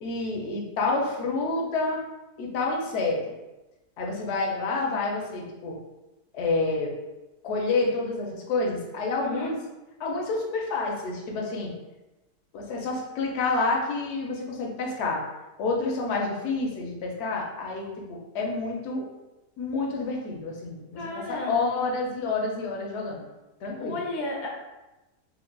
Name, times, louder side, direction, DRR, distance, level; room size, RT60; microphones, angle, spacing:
voice 1, 0.0-2.0 2.4-3.2 4.0-5.8 6.3-6.9 7.4-9.6 10.0-11.7 12.5-15.2 15.6-19.0 19.6-23.2 23.6-24.0, left 3 dB, 60° left, -1 dB, 0.8 m, -28 dB
voice 2, 9.2-9.6 21.0-21.6 23.8-24.5, left 2 dB, 80° left, -1 dB, 1.1 m, -33 dB
4.5 x 2.1 x 2.2 m, 1.0 s
omnidirectional pair, 1.7 m